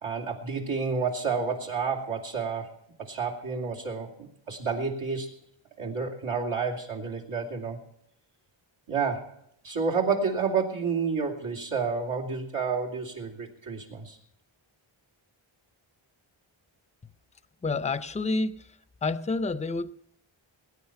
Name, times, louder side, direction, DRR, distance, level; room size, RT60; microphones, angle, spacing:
voice 1, 0.0-2.7 3.0-5.3 5.8-7.8 8.9-9.3 9.6-14.2, right 5 dB, 90° right, 2.7 m, -30 dB
voice 2, 17.6-18.6 19.0-19.9, left 3 dB, 15° left, 0.4 m, -28 dB
19.0 x 9.5 x 5.7 m
wide cardioid pair, 75°, 49 cm